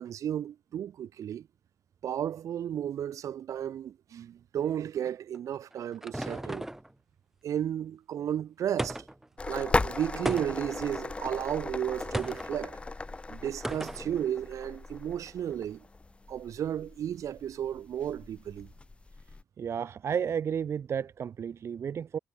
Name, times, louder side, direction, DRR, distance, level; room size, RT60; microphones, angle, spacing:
voice 1, 0.0-1.5 2.0-6.7 7.4-9.1 9.5-12.8 13.3-15.8 16.3-18.7, right 10 dB, 70° right, 3.7 m, -33 dB
sound 1, 5.3-6.9 8.8-9.3 10.2-10.8 12.1-12.5 13.6-14.1, right 1 dB, 5° right, 1.5 m, -35 dB
sound 2, 9.4-19.4, left 3 dB, 20° left, 5.5 m, -37 dB
voice 2, 19.6-22.2, right 7 dB, 50° right, 1.1 m, -32 dB
cardioid pair, 130°, 6 cm